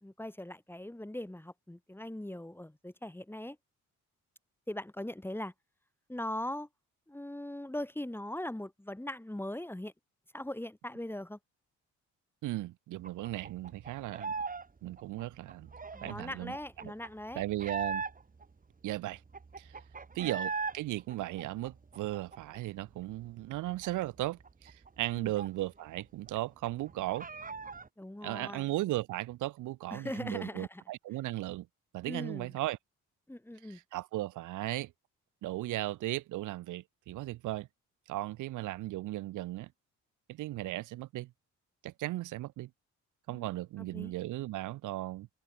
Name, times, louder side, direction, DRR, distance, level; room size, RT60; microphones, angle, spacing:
voice 1, 0.0-3.6 4.7-5.5 6.1-6.7 7.1-9.9 10.3-11.4 15.9-17.4 20.1-20.3 25.2-25.3 28.0-28.7 29.9-30.8 32.1-32.5 33.3-33.8 43.3-43.5 43.9-44.1, left 1 dB, 5° left, 3.9 m, -40 dB
voice 2, 12.4-14.3 14.8-15.7 16.0-16.6 16.8-16.9 17.3-18.0 18.8-19.2 19.6-19.7 20.1-27.3 28.2-31.7 31.9-32.8 33.7-34.9 35.4-37.7 38.1-39.7 40.3-41.3 41.8-42.7 43.3-45.3, right 16 dB, 85° right, 1.0 m, -36 dB
sound 1, 13.0-14.7 14.9-18.4 18.9-19.0 19.1-20.8 21.1-22.8 23.1-23.2 23.5-26.0 26.3-26.4 26.7-27.9, right 4 dB, 25° right, 2.6 m, -40 dB
cardioid pair, 90°, 30 cm